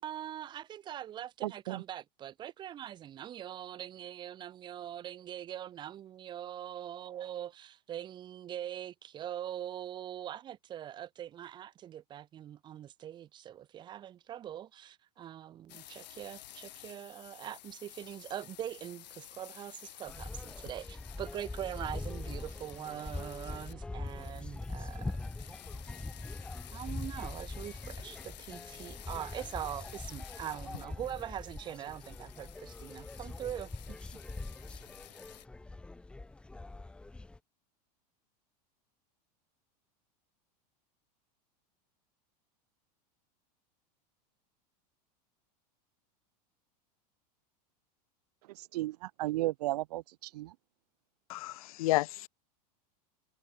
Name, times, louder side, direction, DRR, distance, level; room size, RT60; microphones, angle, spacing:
voice 1, 0.0-25.3 26.7-34.0, right 11 dB, 20° right, 3.8 m, -42 dB
voice 2, 1.4-1.8 48.6-50.5, right 17 dB, 70° right, 0.6 m, -34 dB
sound 1, 15.7-23.7 24.0-35.5, left 13 dB, 90° left, 7.4 m, -52 dB
sound 2, 20.1-37.4, left 2 dB, 5° left, 2.2 m, -43 dB
voice 3, 51.3-52.3, left 18 dB, 60° left, 1.1 m, -31 dB
supercardioid pair, 170°, 21 cm